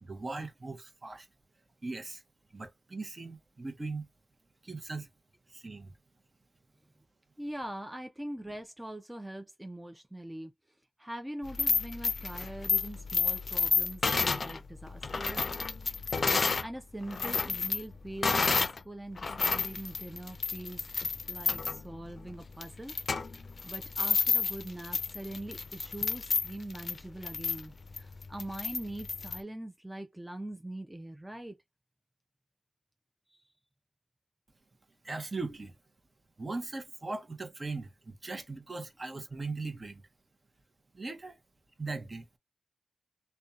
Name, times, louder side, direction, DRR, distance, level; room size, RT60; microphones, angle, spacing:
voice 1, 0.0-1.3 1.8-2.2 2.5-4.1 4.6-5.1 5.5-5.9 35.0-35.7 36.4-40.0 40.9-41.4 41.8-42.2, right 3 dB, 40° right, 0.7 m, -39 dB
voice 2, 7.4-10.5 11.0-15.4 16.4-20.9 21.3-31.6 33.3-33.4, right 1 dB, 10° right, 0.4 m, -43 dB
sound 1, 11.4-16.7 17.0-18.8 19.2-29.4, left 4 dB, 60° left, 0.4 m, -31 dB
2.6 x 2.2 x 2.4 m
cardioid pair, 50°, 0 cm